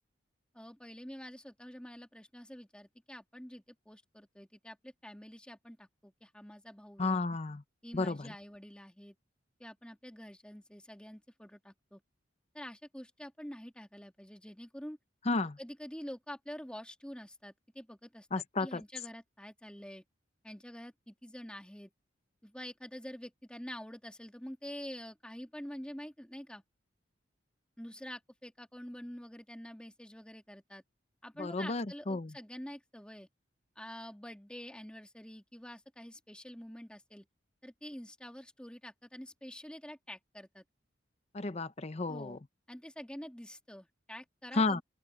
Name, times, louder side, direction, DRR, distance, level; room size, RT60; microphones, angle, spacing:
voice 1, 0.5-7.2 7.8-9.1 9.6-12.0 12.5-15.0 15.6-20.0 20.4-21.9 22.4-26.6 27.8-30.8 31.2-33.3 33.8-37.3 37.6-40.6 42.1-42.4 42.7-44.8, equal, 5° left, 2.4 m, -47 dB
voice 2, 7.0-7.6 7.9-8.3 15.3-15.6 18.3-18.8 31.4-32.3 41.3-42.4 44.5-44.8, left 3 dB, 35° left, 0.7 m, -32 dB
open air
head